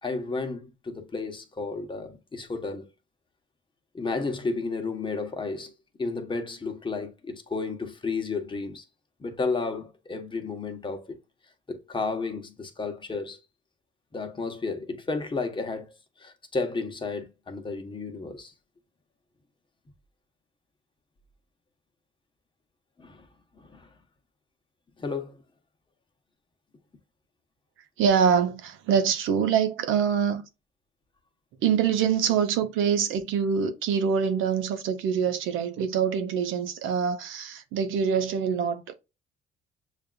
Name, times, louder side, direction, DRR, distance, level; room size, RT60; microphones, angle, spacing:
voice 1, 0.0-2.9 3.9-5.7 6.0-8.8 9.2-11.2 11.7-13.4 14.1-15.9 16.2-18.5 23.0-23.3 23.6-23.9 25.0-25.4, left 3 dB, 25° left, 0.9 m, -32 dB
voice 2, 28.0-30.4 31.6-38.9, right 7 dB, 90° right, 0.7 m, -25 dB
6.7 x 2.5 x 2.2 m
cardioid pair, 90°, 20 cm